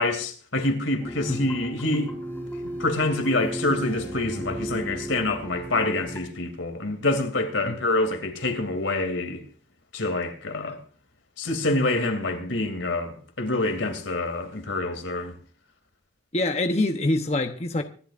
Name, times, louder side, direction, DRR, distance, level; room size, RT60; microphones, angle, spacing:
voice 1, 0.0-2.1 2.8-9.4 9.9-10.8 11.4-15.3, left 2 dB, 85° left, 2.8 m, -26 dB
sound 1, 1.0-6.2, right 1 dB, 10° left, 4.0 m, -35 dB
voice 2, 16.3-17.8, left 2 dB, 35° left, 0.9 m, -25 dB
24.5 x 11.5 x 2.5 m
head